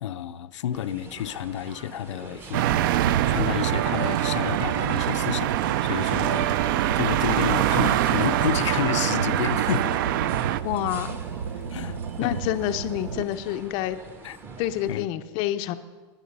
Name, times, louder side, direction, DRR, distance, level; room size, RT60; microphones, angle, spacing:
voice 1, 0.0-2.6 3.3-5.5 5.8-10.0 11.7-12.4 14.2-14.4 14.9-15.1, left 10 dB, 85° left, 9 dB, 0.7 m, -30 dB
sound 1, 0.7-15.1, right 4 dB, 15° right, 0.7 m, -45 dB
sound 2, 2.5-10.6, right 13 dB, 45° right, 0.4 m, -24 dB
sound 3, 2.6-13.2, right 7 dB, 90° right, 0.8 m, -33 dB
voice 2, 10.6-11.2 12.2-14.0 14.6-15.8, left 13 dB, 30° left, 9 dB, 0.5 m, -28 dB
20.5 x 7.4 x 5.3 m, 1.3 s
supercardioid pair, 165°, 15 cm